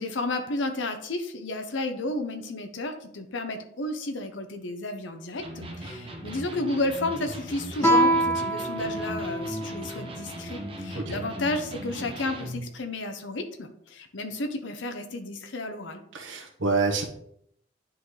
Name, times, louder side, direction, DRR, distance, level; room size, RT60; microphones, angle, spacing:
voice 1, 0.0-16.0, left 2 dB, 70° left, 7 dB, 0.8 m, -32 dB
Electric guitar, 5.4-12.7, right 1 dB, 30° right, 1.1 m, -39 dB
Guitar, 7.8-11.1, right 1 dB, 15° left, 1.8 m, -26 dB
voice 2, 16.1-17.0, right 3 dB, 80° right, 2 dB, 1.2 m, -27 dB
9.7 x 3.8 x 3.3 m, 0.71 s
head